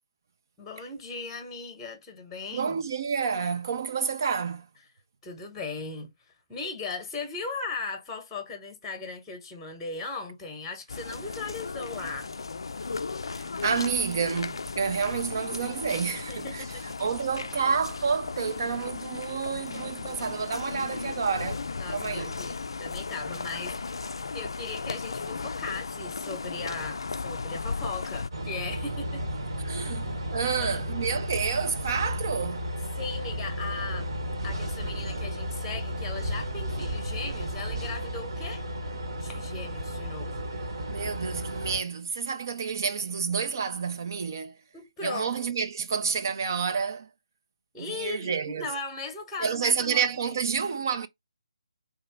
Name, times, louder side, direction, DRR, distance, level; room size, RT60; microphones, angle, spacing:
voice 1, 0.6-2.8 5.2-6.1 6.5-12.3 16.1-16.8 21.8-23.8 24.3-29.2 29.8-29.9 30.5-30.8 33.0-34.1 34.4-38.6 39.1-40.5 44.7-45.3 47.7-50.4, left 4 dB, 5° left, 1.0 m, -38 dB
voice 2, 2.5-4.7 13.3-22.4 29.6-32.7 40.9-44.6 45.0-47.1 47.8-48.7 49.4-51.1, right 6 dB, 35° right, 0.5 m, -29 dB
sound 1, 10.9-28.3, left 4 dB, 55° left, 0.3 m, -36 dB
sound 2, 28.3-41.8, equal, 50° right, 1.0 m, -33 dB
3.5 x 2.9 x 4.7 m
figure-of-eight pair, 145°, 3 cm